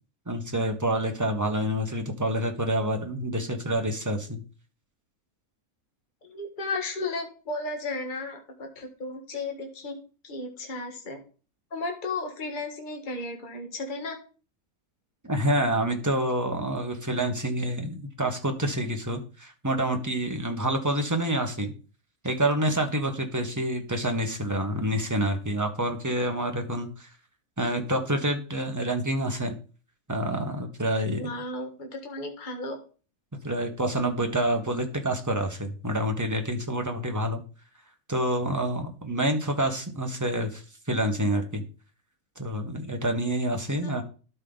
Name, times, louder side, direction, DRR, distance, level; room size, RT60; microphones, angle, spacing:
voice 1, 0.3-4.4 15.2-21.7 22.2-27.1 27.6-29.5 30.1-31.2 33.4-37.4 38.1-40.6 40.9-41.6 42.4-44.0, right 1 dB, 15° right, 4 dB, 1.2 m, -27 dB
voice 2, 6.3-10.0 10.2-11.2 11.7-14.2 31.1-32.8 43.8-44.0, left 2 dB, 35° left, 2 dB, 1.6 m, -34 dB
12.5 x 5.4 x 3.9 m, 0.36 s
omnidirectional pair, 1.5 m